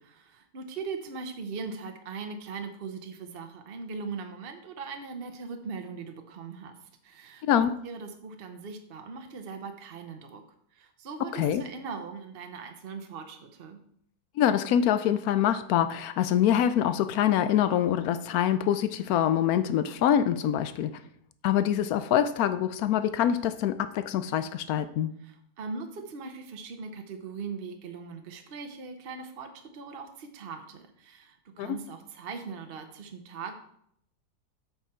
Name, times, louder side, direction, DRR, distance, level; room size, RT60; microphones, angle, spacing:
voice 1, 0.0-10.4 10.7-13.8 25.2-33.5, right 5 dB, 50° right, 0.7 m, -40 dB
voice 2, 7.4-7.7 11.3-11.6 14.4-21.0 21.4-25.1 31.6-31.8, left 10 dB, 75° left, 0.9 m, -25 dB
8.1 x 6.1 x 4.4 m
omnidirectional pair, 2.0 m